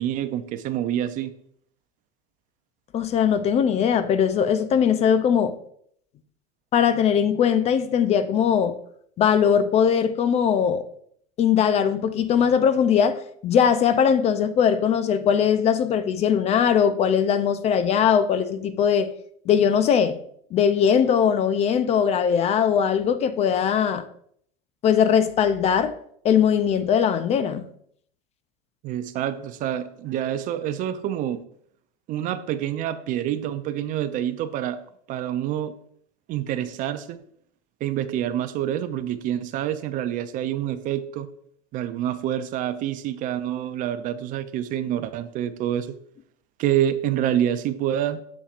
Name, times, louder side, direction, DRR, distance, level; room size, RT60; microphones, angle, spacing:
voice 1, 0.0-1.3 28.8-31.4 32.1-34.8 35.1-35.7 36.3-37.2 37.8-41.3 41.7-46.0 46.6-48.2, right 11 dB, 40° right, 0.5 m, -27 dB
voice 2, 2.9-5.5 6.7-8.8 9.2-10.8 11.4-19.1 19.5-20.2 20.5-24.0 24.8-25.9 26.2-27.6, left 8 dB, 30° left, 0.5 m, -20 dB
7.2 x 7.0 x 2.5 m
supercardioid pair, 125°, 20 cm